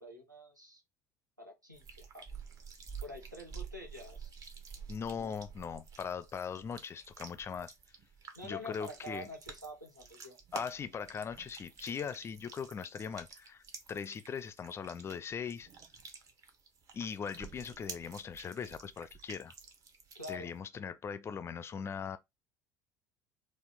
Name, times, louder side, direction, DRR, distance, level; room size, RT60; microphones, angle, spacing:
voice 1, 0.0-0.8 1.4-2.2 3.0-4.3 5.1-5.4 8.3-10.4 20.1-20.5, left 1 dB, 90° right, 1.1 m, -47 dB
sound 1, 1.7-20.6, right 6 dB, 35° right, 0.9 m, -50 dB
voice 2, 4.9-7.7 8.4-9.3 10.5-15.7 16.9-19.5 20.3-22.2, left 6 dB, 25° left, 0.4 m, -40 dB
4.2 x 2.5 x 3.8 m
figure-of-eight pair, 65°, 10 cm